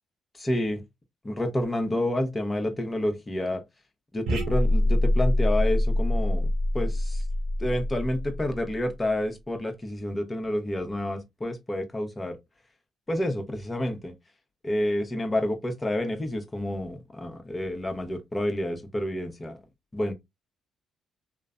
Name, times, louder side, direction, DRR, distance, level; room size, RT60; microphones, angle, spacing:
voice 1, 0.4-0.8 1.2-3.6 4.1-6.5 6.7-7.2 7.6-12.4 13.1-14.1 14.6-19.6 19.9-20.1, left 1 dB, 20° left, 0.8 m, -29 dB
sound 1, 4.3-8.9, left 1 dB, 80° right, 1.0 m, -25 dB
3.1 x 2.0 x 2.5 m
cardioid pair, 75°, 0 cm